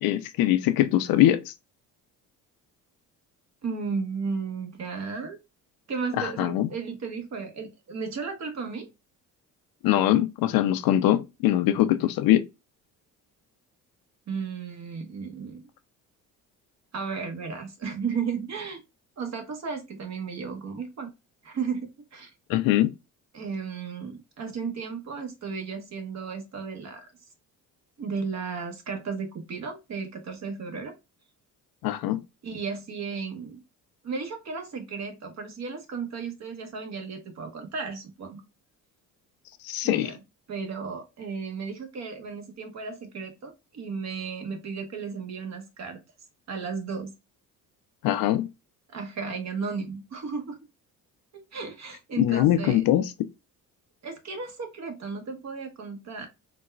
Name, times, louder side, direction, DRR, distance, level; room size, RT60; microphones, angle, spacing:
voice 1, 0.0-1.5 6.2-6.7 9.8-12.4 22.5-22.9 31.8-32.2 39.6-40.1 48.0-48.5 52.2-53.1, left 13 dB, 80° left, 0.6 m, -22 dB
voice 2, 3.6-5.4 5.9-8.9 14.3-15.6 16.9-18.8 19.2-21.1 21.4-22.3 23.3-27.1 28.0-30.9 32.4-33.6 34.0-38.4 39.8-40.2 40.5-46.0 46.5-47.1 48.9-50.6 51.3-52.8 54.0-56.3, right 5 dB, 50° right, 1.2 m, -34 dB
4.0 x 2.2 x 2.3 m
cardioid pair, 90°, 36 cm